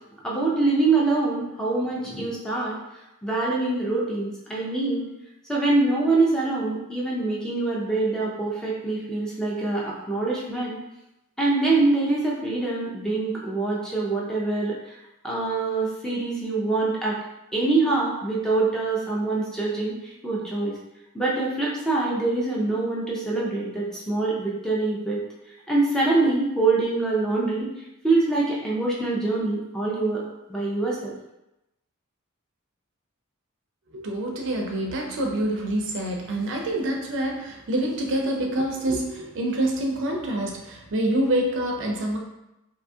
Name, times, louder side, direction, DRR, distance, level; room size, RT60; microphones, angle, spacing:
voice 1, 0.2-2.8 3.2-5.1 5.5-10.8 11.4-14.9 15.2-17.2 17.5-20.7 21.1-25.2 25.7-27.7 28.0-30.2 30.5-31.1, right 3 dB, 5° left, -5 dB, 0.4 m, -24 dB
voice 2, 33.9-42.2, right 1 dB, 60° right, 1 dB, 0.5 m, -26 dB
2.7 x 2.3 x 2.6 m, 0.91 s
head